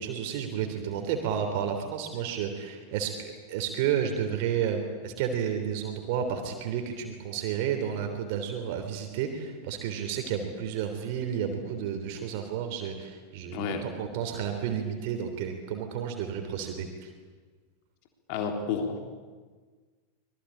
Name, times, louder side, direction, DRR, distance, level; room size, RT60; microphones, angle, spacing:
voice 1, 0.0-17.1, right 8 dB, 45° right, 5 dB, 3.4 m, -31 dB
voice 2, 13.5-13.8 18.3-19.1, left 6 dB, 45° left, 4 dB, 3.5 m, -31 dB
25.5 x 22.0 x 8.7 m, 1.5 s
figure-of-eight pair, 90°, 0 cm